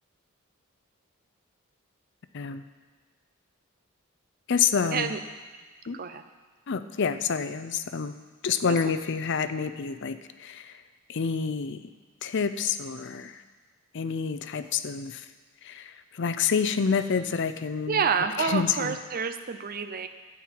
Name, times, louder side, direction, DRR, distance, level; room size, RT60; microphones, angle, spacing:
voice 1, 2.3-2.6 4.5-5.1 5.9-6.0 6.7-8.1 8.4-10.8 11.1-11.9 12.2-13.4 13.9-15.2 15.6-18.0 18.4-19.0, left 6 dB, 55° left, 11 dB, 0.5 m, -28 dB
voice 2, 17.9-20.1, right 6 dB, 45° right, 9 dB, 0.6 m, -28 dB
13.0 x 4.5 x 8.6 m, 1.4 s
head